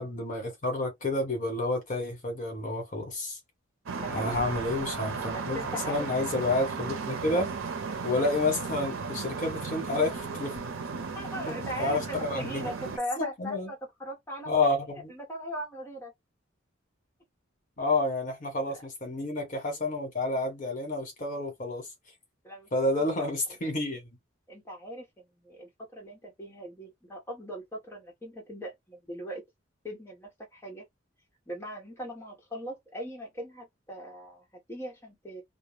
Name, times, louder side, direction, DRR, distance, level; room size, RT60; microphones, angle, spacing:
voice 1, 0.0-3.4 4.1-7.5 8.0-10.5 11.4-12.7 13.2-13.7 14.5-15.1 17.8-21.9 22.7-24.0, left 2 dB, 45° left, 1.2 m, -30 dB
sound 1, 3.9-13.0, right 5 dB, 90° right, 0.7 m, -35 dB
voice 2, 4.0-4.4 5.2-6.1 7.9-8.0 10.9-14.8 15.1-16.1 18.7-18.8 22.4-23.3 24.5-29.4 29.8-30.9 31.5-35.4, equal, 15° left, 0.9 m, -40 dB
2.3 x 2.2 x 3.2 m
head